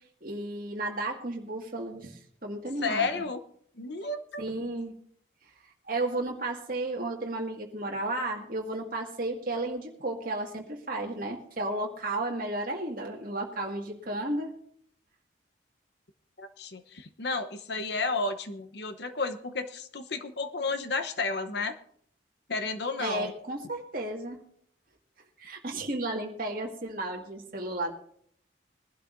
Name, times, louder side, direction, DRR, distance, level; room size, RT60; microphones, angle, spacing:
voice 1, 0.2-3.3 4.4-4.9 5.9-14.5 23.0-24.4 25.4-27.9, right 2 dB, 45° right, 0 dB, 2.0 m, -33 dB
voice 2, 2.8-3.4 3.7-4.4 16.4-21.8 22.5-23.3, left 3 dB, 60° left, 8 dB, 0.9 m, -32 dB
22.0 x 11.5 x 2.6 m, 0.65 s
head